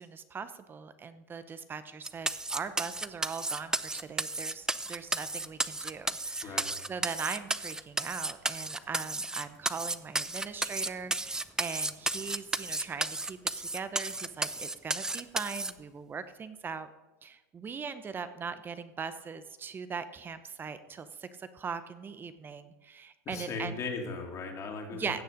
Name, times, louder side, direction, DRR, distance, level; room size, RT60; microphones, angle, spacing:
voice 1, 0.0-16.9 17.2-23.8 24.9-25.2, right 5 dB, 25° right, 12 dB, 0.8 m, -40 dB
sound 1, 2.0-15.7, right 2 dB, 5° right, 0.5 m, -33 dB
voice 2, 23.3-25.2, left 4 dB, 35° left, 2 dB, 2.7 m, -37 dB
16.0 x 6.7 x 5.2 m, 1.1 s
supercardioid pair, 110°, 9 cm